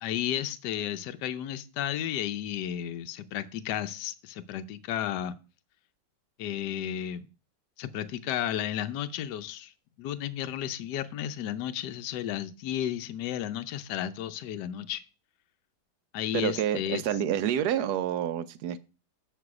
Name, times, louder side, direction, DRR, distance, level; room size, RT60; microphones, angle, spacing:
voice 1, 0.0-5.3 6.4-7.3 7.8-9.7 10.0-15.0 16.1-17.0, left 11 dB, 70° left, 1.2 m, -33 dB
voice 2, 16.3-18.8, right 10 dB, 70° right, 1.0 m, -28 dB
8.2 x 5.5 x 4.8 m
omnidirectional pair, 2.1 m